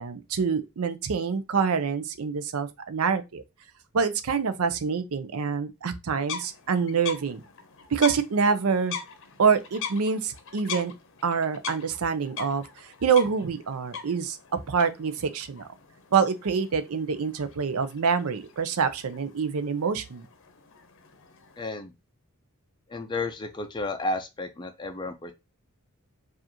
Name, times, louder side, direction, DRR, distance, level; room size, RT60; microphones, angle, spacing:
voice 1, 0.0-3.4 3.9-7.4 7.9-9.0 9.4-10.9 11.2-15.6 16.1-20.3, right 6 dB, 70° right, 0.5 m, -26 dB
sound 1, 6.2-21.7, left 7 dB, 60° left, 0.7 m, -42 dB
voice 2, 21.6-21.9 22.9-25.3, left 2 dB, 20° left, 0.4 m, -32 dB
4.8 x 2.5 x 2.8 m
head